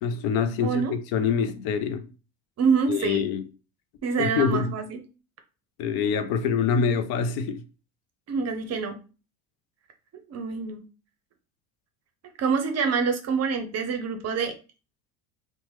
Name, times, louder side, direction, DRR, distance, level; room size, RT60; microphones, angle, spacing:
voice 1, 0.0-2.1 2.9-3.4 4.2-4.7 5.8-7.6, left 6 dB, 60° left, 0.5 m, -25 dB
voice 2, 0.6-0.9 2.6-3.2 4.0-5.0 8.3-9.0 10.3-10.8 12.4-14.5, right 5 dB, 35° right, 0.6 m, -26 dB
2.9 x 2.2 x 3.1 m
supercardioid pair, 90°, 43 cm